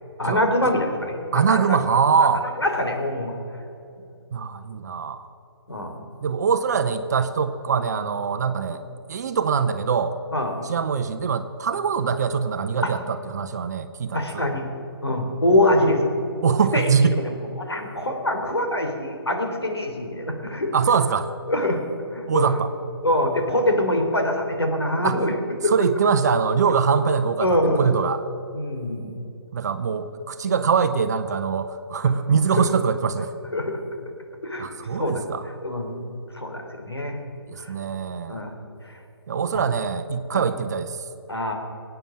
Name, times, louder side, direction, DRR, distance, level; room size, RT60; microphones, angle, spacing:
voice 1, 0.2-1.8 2.6-3.4 5.7-6.0 10.3-10.6 12.8-12.9 14.1-14.6 15.0-16.0 16.7-16.9 17.2-20.7 21.5-21.8 22.1-22.5 23.0-25.3 25.6-25.7 27.4-27.8 28.5-29.1 32.0-32.1 32.6-32.7 33.5-33.8 34.4-35.2 35.6-36.0 36.3-37.2 37.6-37.7 38.3-38.5 38.9-39.0 40.3-40.4 41.3-41.5, left 1 dB, 75° left, 3 dB, 3.3 m, -24 dB
voice 2, 1.3-2.5 4.3-5.3 6.2-8.8 9.1-10.2 10.7-14.5 16.4-17.2 20.7-21.3 22.3-22.7 25.0-25.2 25.7-28.2 29.5-33.3 34.6-35.4 37.5-38.5 39.3-41.0, right 6 dB, 40° right, 10 dB, 0.9 m, -23 dB
21.5 x 9.2 x 7.2 m, 2.9 s
figure-of-eight pair, 140°, 13 cm